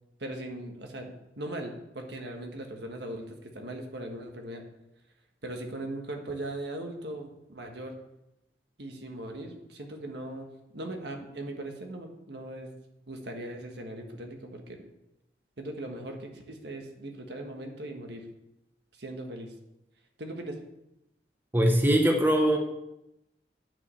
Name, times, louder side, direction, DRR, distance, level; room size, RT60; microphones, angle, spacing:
voice 1, 0.2-4.6 5.4-7.9 8.8-12.7 13.1-14.9 15.6-18.3 18.9-19.5 20.2-20.6, right 1 dB, 70° right, 3 dB, 1.4 m, -39 dB
voice 2, 21.5-22.6, right 1 dB, 10° right, 2 dB, 0.9 m, -22 dB
9.4 x 5.2 x 7.0 m, 0.87 s
head